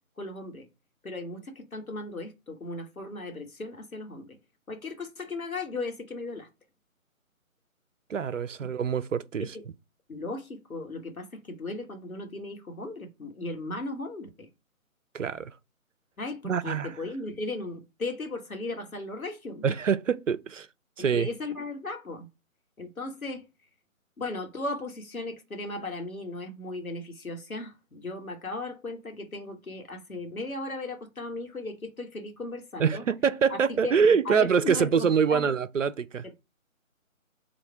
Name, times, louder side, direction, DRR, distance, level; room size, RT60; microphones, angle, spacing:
voice 1, 0.2-0.7 1.0-4.3 4.7-6.5 9.4-9.5 10.1-14.5 16.2-19.6 21.1-22.3 22.8-23.4 24.2-33.0 33.5-34.0 34.2-35.5, left 2 dB, 80° left, 1.3 m, -36 dB
voice 2, 8.1-9.6 15.1-15.5 16.4-16.9 19.6-20.7 21.0-21.3 32.8-36.3, right 6 dB, 65° right, 0.5 m, -25 dB
4.2 x 2.4 x 4.5 m
figure-of-eight pair, 150°, 42 cm